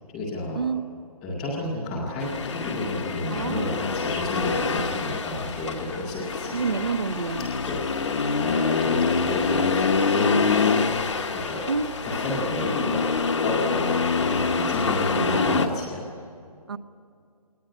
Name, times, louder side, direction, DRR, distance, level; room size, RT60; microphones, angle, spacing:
voice 1, 0.1-0.6 1.2-6.6 7.7-11.7 12.0-13.0 13.4-16.0, left 2 dB, ahead, -10 dB, 0.6 m, -31 dB
Accelerating revving vroom, 2.2-15.7, left 4 dB, 50° left, 1.0 m, -25 dB
voice 2, 3.3-3.7 6.5-7.5 11.7-11.9 15.2-15.6 16.7-16.8, right 5 dB, 40° right, 14 dB, 0.7 m, -28 dB
sound 1, 3.9-15.9, left 3 dB, 90° left, 3.0 m, -43 dB
20.5 x 19.0 x 9.8 m, 2.3 s
hypercardioid pair, 180°, 20 cm